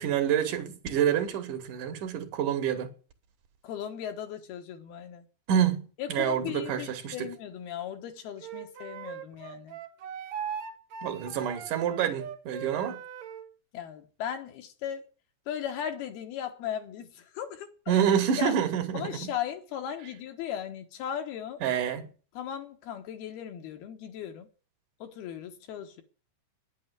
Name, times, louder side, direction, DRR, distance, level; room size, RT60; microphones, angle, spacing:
voice 1, 0.0-2.9 5.5-5.8 6.1-7.3 11.0-13.0 17.9-19.3 21.6-22.1, right 9 dB, 55° right, 2.9 m, -27 dB
voice 2, 3.6-5.3 6.0-9.8 13.7-15.1 15.5-18.0 18.4-18.5 18.9-21.6 22.3-24.5 25.0-26.0, left 9 dB, 70° left, 3.1 m, -37 dB
Wind instrument woodwind instrument, 8.4-13.5, right 7 dB, 80° right, 1.5 m, -39 dB
10.0 x 9.2 x 9.6 m
omnidirectional pair, 4.9 m